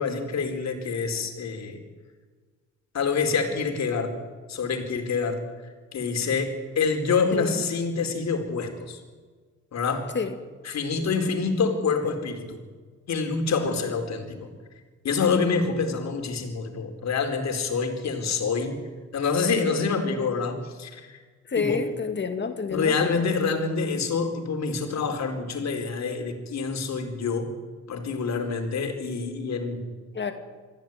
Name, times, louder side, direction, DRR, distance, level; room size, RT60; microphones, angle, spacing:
voice 1, 0.0-1.8 2.9-4.2 4.5-5.5 5.9-9.0 9.7-10.2 10.6-12.6 13.1-14.5 15.0-18.9 19.1-21.0 21.6-21.8 22.7-27.5 27.9-29.8, left 5 dB, 60° left, 5 dB, 4.4 m, -26 dB
voice 2, 7.3-7.6 10.1-10.3 21.5-23.1 30.1-30.3, left 5 dB, 35° left, 7 dB, 2.3 m, -28 dB
24.0 x 15.5 x 9.3 m, 1.5 s
cardioid pair, 90°, 30 cm